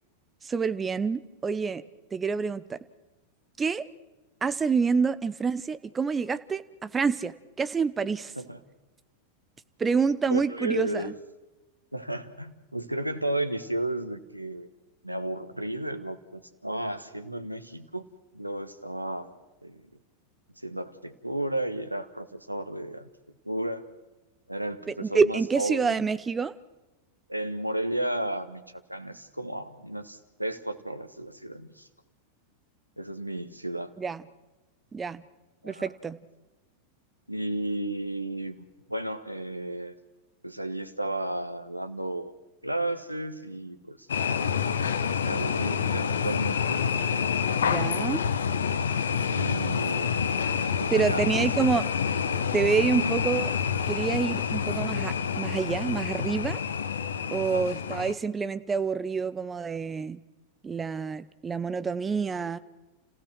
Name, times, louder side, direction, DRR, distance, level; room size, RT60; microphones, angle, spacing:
voice 1, 0.4-1.8 2.1-2.8 3.6-3.9 4.4-8.3 9.8-11.1 24.9-26.5 34.0-34.2 34.9-35.2 35.6-36.2 47.6-48.2 50.9-51.8 52.5-53.5 53.9-56.6 57.3-60.2 60.6-62.6, right 5 dB, 15° right, 14 dB, 0.9 m, -27 dB
voice 2, 10.3-11.1 11.9-14.7 15.0-18.1 18.3-19.4 19.6-19.8 20.6-23.1 23.4-23.8 24.5-26.1 27.3-28.6 28.9-31.9 33.0-33.9 35.6-35.9 37.3-39.9 40.4-42.3 42.6-44.9 45.2-48.1 49.3-50.4 50.8-51.7 52.9-53.2 57.5-57.7, right 1 dB, 90° right, 11 dB, 1.3 m, -33 dB
sound 1, 44.1-58.1, left 7 dB, 65° left, 1.1 m, -28 dB
30.0 x 16.0 x 6.2 m, 1.1 s
figure-of-eight pair, 90°, 0 cm